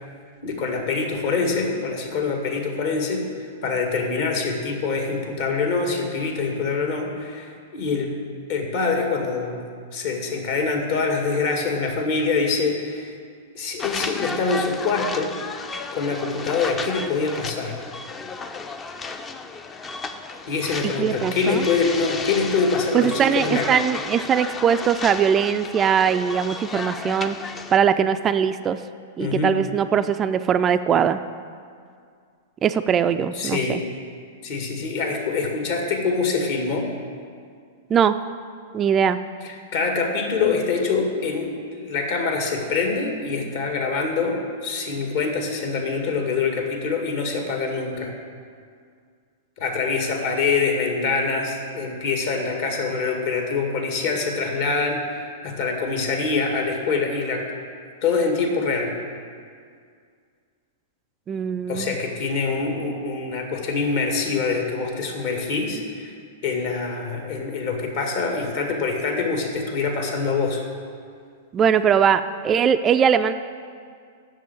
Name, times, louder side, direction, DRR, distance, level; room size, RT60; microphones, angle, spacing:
voice 1, 0.4-3.2 3.6-8.2 8.5-9.6 9.9-13.1 13.5-15.3 15.9-17.7 20.5-23.8 29.2-29.6 33.4-33.8 34.4-36.9 39.7-48.1 49.6-57.4 58.0-58.9 61.7-66.1 66.4-70.6, left 4 dB, 55° left, 1 dB, 2.0 m, -25 dB
sound 1, 13.8-27.8, left 4 dB, 20° left, 0.6 m, -33 dB
voice 2, 20.8-21.6 22.9-27.4 27.7-28.8 29.2-31.2 32.6-33.8 37.9-38.2 38.7-39.2 61.3-62.0 71.5-73.3, right 8 dB, 25° right, 10 dB, 0.4 m, -21 dB
7.7 x 6.9 x 8.3 m, 2.2 s
figure-of-eight pair, 105°, 0 cm